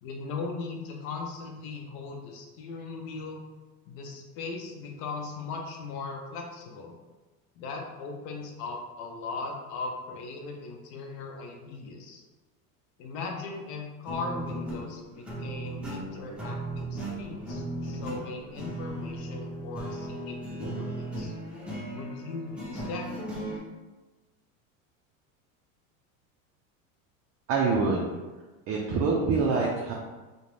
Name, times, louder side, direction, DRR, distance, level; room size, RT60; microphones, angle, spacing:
voice 1, 0.0-3.4 3.9-7.0 7.6-12.2 13.0-21.3 21.9-23.1, left 3 dB, 60° left, 1 dB, 0.7 m, -38 dB
sound 1, 14.0-23.6, right 1 dB, 5° right, 0.6 m, -37 dB
voice 2, 27.5-28.1 28.7-29.9, right 4 dB, 35° right, -2 dB, 0.4 m, -25 dB
2.4 x 2.2 x 3.1 m, 1.2 s
supercardioid pair, 110°, 42 cm